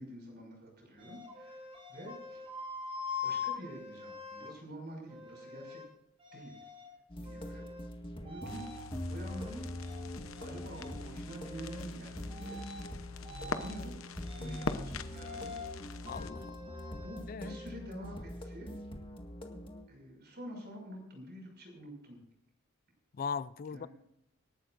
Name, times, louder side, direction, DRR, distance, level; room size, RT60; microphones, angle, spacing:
voice 1, 0.0-2.4 3.2-5.8 6.3-6.6 7.2-7.7 8.2-8.6 9.1-9.6 10.4-12.6 13.4-14.0 14.3-15.8 17.0-18.7 19.9-22.2 23.7-23.9, equal, 55° right, 6.1 m, -47 dB
sound 1, 1.0-4.5 5.1-5.9 6.2-6.9 7.2-7.9 8.3-8.8 9.3-10.5 10.7-11.0 11.3-11.9 12.3-12.9 13.2-13.8 14.2-14.8 15.1-15.7 16.0-17.7, left 5 dB, 30° right, 6.6 m, -44 dB
sound 2, 7.1-19.8, equal, 25° left, 1.9 m, -43 dB
sound 3, 8.5-16.3, left 4 dB, 75° left, 0.9 m, -44 dB
voice 2, 16.1-16.6 17.3-17.6 23.1-23.9, left 6 dB, 45° left, 0.4 m, -39 dB
26.5 x 12.0 x 2.6 m
head